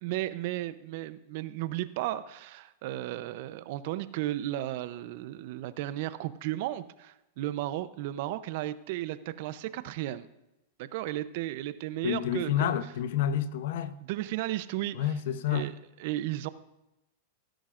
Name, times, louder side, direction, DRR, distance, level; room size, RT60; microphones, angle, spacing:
voice 1, 0.0-10.3 10.8-12.7 14.0-15.1 15.5-15.7 16.0-16.5, right 15 dB, 60° right, 0.7 m, -34 dB
voice 2, 12.0-13.9 14.9-15.7, left 9 dB, 70° left, 0.8 m, -29 dB
18.0 x 10.0 x 2.5 m
hypercardioid pair, 125°, 0 cm